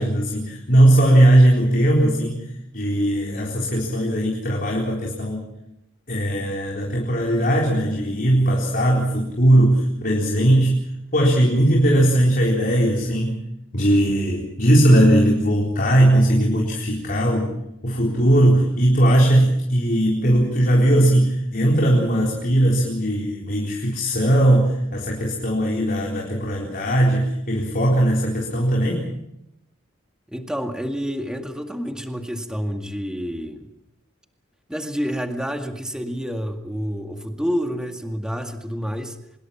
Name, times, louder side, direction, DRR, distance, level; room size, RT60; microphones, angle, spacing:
voice 1, 0.0-2.5 2.7-5.5 6.1-10.8 11.1-13.4 13.7-17.5 17.8-29.1, right 1 dB, 45° left, -1 dB, 4.2 m, -18 dB
voice 2, 30.3-33.7 34.7-39.2, equal, 5° right, 5 dB, 2.0 m, -28 dB
25.5 x 21.5 x 6.0 m, 0.83 s
head